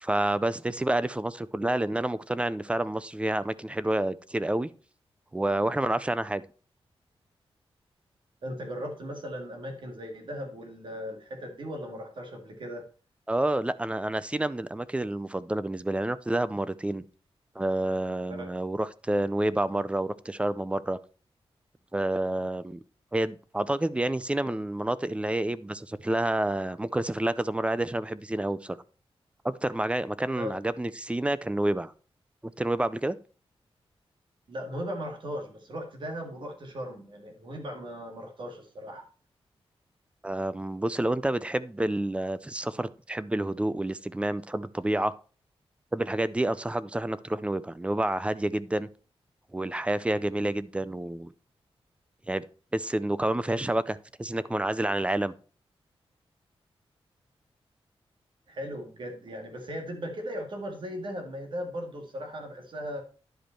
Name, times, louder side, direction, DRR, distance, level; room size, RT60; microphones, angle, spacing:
voice 1, 0.0-4.7 5.3-6.4 13.3-17.0 17.6-21.0 21.9-22.8 23.1-28.8 29.4-31.9 32.6-33.2 40.2-45.1 45.9-48.9 49.5-51.3 52.3-52.4 52.7-55.3, right 1 dB, 10° right, 0.4 m, -29 dB
voice 2, 8.4-12.8 18.3-18.5 30.4-30.6 34.5-39.0 58.5-63.0, equal, 55° right, 1.9 m, -37 dB
10.0 x 5.1 x 4.4 m
wide cardioid pair, 165°, 10 cm